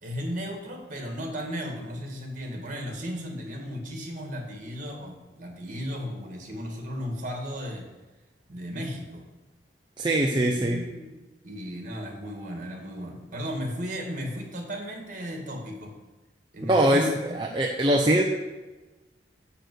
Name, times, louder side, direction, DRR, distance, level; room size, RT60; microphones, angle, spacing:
voice 1, 0.0-7.9 8.5-9.2 10.3-11.1 11.4-15.9 16.5-17.4, equal, 45° right, 1 dB, 2.2 m, -35 dB
voice 2, 10.0-10.8 16.7-17.1 17.3-18.2, right 1 dB, 25° right, 0 dB, 0.7 m, -22 dB
6.9 x 6.7 x 7.8 m, 1.2 s
head